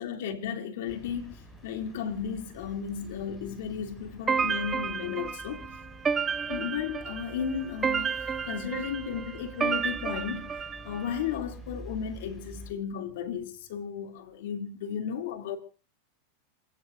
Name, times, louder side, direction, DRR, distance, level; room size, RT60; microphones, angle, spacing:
voice 1, 0.0-5.7 6.5-15.6, left 7 dB, 75° left, 2.9 m, -34 dB
sound 1, 0.9-12.7, equal, 10° left, 6.5 m, -48 dB
sound 2, 4.3-11.2, right 6 dB, 20° right, 0.8 m, -31 dB
28.0 x 17.5 x 2.6 m
hypercardioid pair, 120°, 0 cm